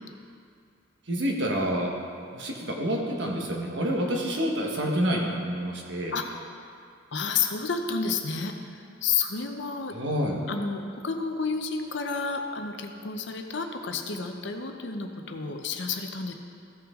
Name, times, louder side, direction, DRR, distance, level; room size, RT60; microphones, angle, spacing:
voice 1, 1.1-1.9 2.3-6.1 9.9-10.4, equal, 60° right, 0 dB, 1.4 m, -28 dB
voice 2, 7.1-8.5 9.0-10.0 10.5-16.3, left 5 dB, 60° left, 4 dB, 0.7 m, -30 dB
15.0 x 5.9 x 3.7 m, 2.3 s
head